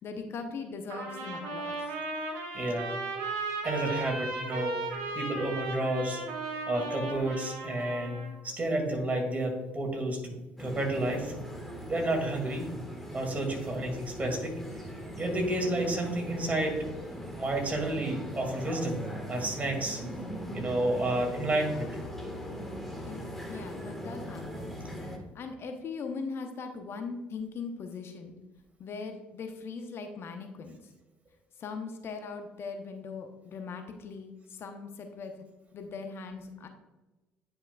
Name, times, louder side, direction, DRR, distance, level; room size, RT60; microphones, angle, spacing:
voice 1, 0.0-1.8 23.1-24.7 25.3-28.4 28.8-30.8 31.6-35.3 35.7-36.7, left 4 dB, 50° left, 5 dB, 0.9 m, -40 dB
Trumpet, 0.9-8.4, right 3 dB, 65° right, 1.4 m, -36 dB
voice 2, 2.5-2.9 3.6-4.8 5.2-6.2 6.7-8.2 8.4-11.3 11.9-12.7 13.1-14.5 15.2-16.8 17.4-19.0 19.3-20.0 20.5-21.9, right 1 dB, 30° right, 2 dB, 2.3 m, -30 dB
sound 1, 10.6-25.2, equal, 5° left, 1.5 m, -40 dB
9.8 x 5.5 x 2.4 m, 1.1 s
hypercardioid pair, 55°, 5 cm